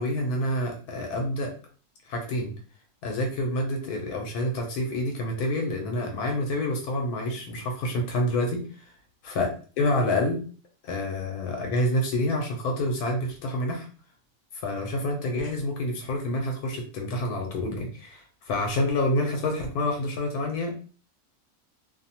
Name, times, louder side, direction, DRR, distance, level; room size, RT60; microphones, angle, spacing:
voice 1, 0.0-1.5 2.1-2.5 3.0-8.6 9.3-9.5 9.8-10.4 10.8-13.9 14.5-20.7, left 1 dB, 85° left, 1 dB, 1.2 m, -28 dB
2.7 x 2.1 x 2.7 m, 0.39 s
omnidirectional pair, 1.6 m